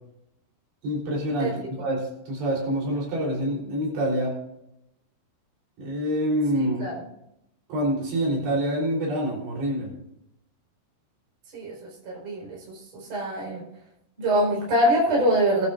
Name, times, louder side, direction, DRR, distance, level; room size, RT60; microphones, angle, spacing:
voice 1, 0.8-4.4 5.8-6.8 7.7-9.9, equal, 80° right, -3 dB, 6.0 m, -26 dB
voice 2, 12.1-12.6 13.1-13.6 14.2-15.7, equal, 40° right, -3 dB, 5.5 m, -23 dB
19.5 x 12.0 x 2.6 m, 0.82 s
omnidirectional pair, 4.9 m